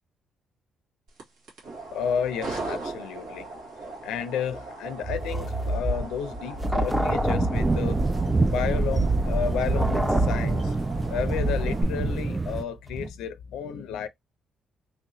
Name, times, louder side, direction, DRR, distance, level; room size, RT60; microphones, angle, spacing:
sound 1, 1.1-11.8, right 2 dB, 85° right, 1.9 m, -39 dB
voice 1, 1.9-3.5 4.0-8.0 8.4-14.1, left 7 dB, 90° left, 0.5 m, -32 dB
sound 2, 5.0-12.5 12.9-13.1, right 1 dB, 5° right, 0.7 m, -28 dB
sound 3, 7.5-12.6, right 3 dB, 20° right, 0.3 m, -26 dB
3.3 x 2.9 x 2.7 m
cardioid pair, 90°, 0 cm